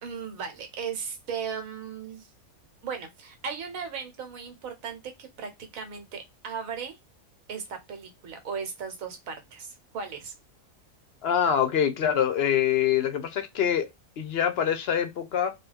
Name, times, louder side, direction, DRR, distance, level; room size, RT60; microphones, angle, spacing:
voice 1, 0.0-2.3 2.8-7.0 7.5-10.3, right 6 dB, 80° right, 1.2 m, -37 dB
voice 2, 11.2-13.9 14.2-15.5, left 9 dB, 65° left, 0.7 m, -25 dB
3.1 x 2.3 x 3.3 m
omnidirectional pair, 1.4 m